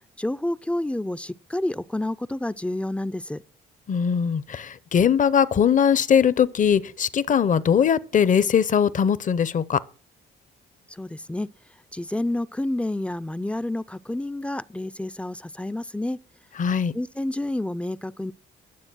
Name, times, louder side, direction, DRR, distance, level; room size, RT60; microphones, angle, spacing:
voice 1, 0.2-3.4 11.0-11.5 11.9-16.2 16.9-18.3, left 1 dB, 5° left, 0.4 m, -29 dB
voice 2, 3.9-9.8 16.6-16.9, left 7 dB, 40° left, 0.7 m, -20 dB
11.5 x 7.1 x 6.2 m
cardioid pair, 90°, 20 cm